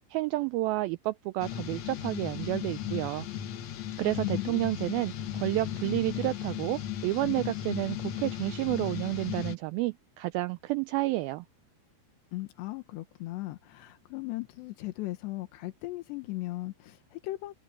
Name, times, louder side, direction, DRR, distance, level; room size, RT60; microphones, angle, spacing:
voice 1, 0.1-3.3 4.0-5.1 5.4-11.5, right 19 dB, 90° right, 2.1 m, -30 dB
sound 1, 1.4-9.5, left 10 dB, 65° left, 1.7 m, -36 dB
voice 2, 4.2-4.6 12.3-17.5, left 18 dB, 90° left, 3.4 m, -37 dB
omnidirectional pair, 4.8 m